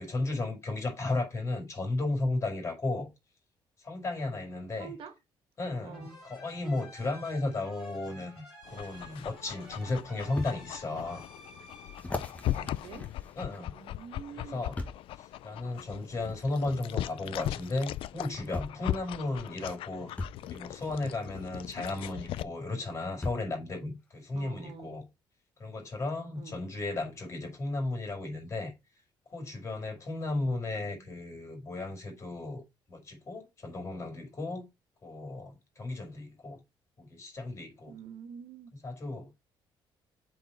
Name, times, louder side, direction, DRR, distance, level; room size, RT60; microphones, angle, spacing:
voice 1, 0.0-3.1 3.8-4.9 5.6-11.2 12.5-12.7 13.3-13.8 14.4-14.7 15.2-20.1 20.4-25.0 25.6-28.7 29.3-32.6 32.9-34.7 35.0-36.6 37.0-37.9 38.8-39.3, left 2 dB, 30° left, 4.9 m, -34 dB
voice 2, 4.8-5.1 5.8-6.2 12.5-13.1 13.5-14.7 24.3-25.0 26.3-26.6 30.4-31.1 37.9-38.7, right 7 dB, 70° right, 1.7 m, -47 dB
sound 1, 5.9-13.4, left 1 dB, 5° right, 4.7 m, -52 dB
Dog, 8.6-22.4, left 13 dB, 80° left, 0.5 m, -39 dB
sound 2, 10.4-10.6 11.2-11.3 12.0-13.9 14.8-15.1 16.3-16.4 17.7-17.8 18.5-18.9 20.2-20.4 22.0-22.1 23.2-23.6 24.3-24.4, left 2 dB, 15° left, 1.6 m, -38 dB
7.9 x 4.5 x 4.5 m
cardioid pair, 145°, 9 cm